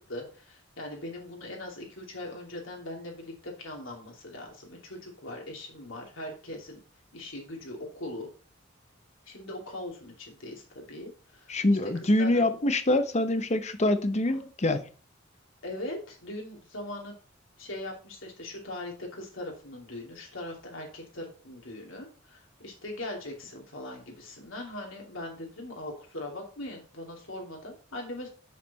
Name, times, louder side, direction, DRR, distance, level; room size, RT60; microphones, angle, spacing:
voice 1, 0.0-6.8 7.1-8.3 9.3-11.5 12.2-12.4 15.6-17.1 17.6-28.3, left 1 dB, 75° left, 2.8 m, -40 dB
voice 2, 11.5-14.9, left 1 dB, 35° left, 0.8 m, -25 dB
7.2 x 6.7 x 4.2 m
head